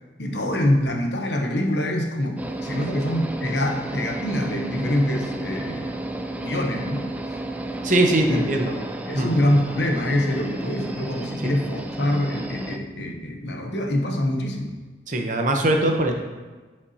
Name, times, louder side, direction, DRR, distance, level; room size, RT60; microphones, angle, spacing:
voice 1, 0.2-5.9 6.4-7.1 8.3-8.4 9.1-14.8, left 1 dB, 75° left, 3 dB, 0.9 m, -25 dB
sound 1, 2.4-12.8, right 1 dB, 10° right, 0.3 m, -32 dB
voice 2, 7.8-8.8 9.2-9.3 11.4-11.5 15.1-16.1, right 1 dB, 45° right, 3 dB, 0.8 m, -21 dB
9.7 x 5.2 x 2.8 m, 1.3 s
head